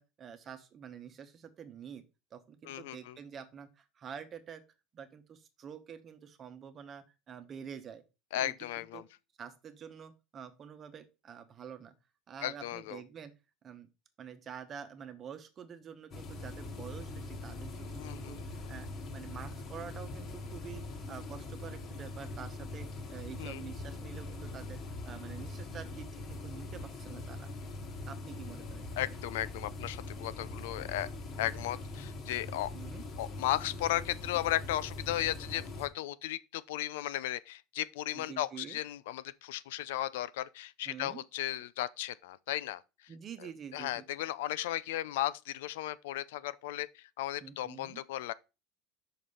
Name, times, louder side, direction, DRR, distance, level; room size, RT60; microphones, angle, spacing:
voice 1, 0.0-2.0 2.3-4.6 4.9-8.0 8.3-9.0 9.4-11.9 12.3-13.3 13.6-13.9 14.2-27.5 28.1-28.9 32.5-33.0 38.1-38.8 40.8-41.2 43.1-44.0 47.4-48.0, right 7 dB, 30° right, 1.0 m, -47 dB
voice 2, 2.6-3.2 8.3-9.1 12.4-13.0 18.0-18.4 23.4-23.6 29.0-31.1 31.4-32.7 33.2-43.1 43.4-48.3, left 14 dB, 90° left, 0.5 m, -35 dB
sound 1, 16.1-35.9, left 2 dB, 35° left, 1.5 m, -42 dB
5.9 x 5.0 x 5.5 m
supercardioid pair, 140°, 0 cm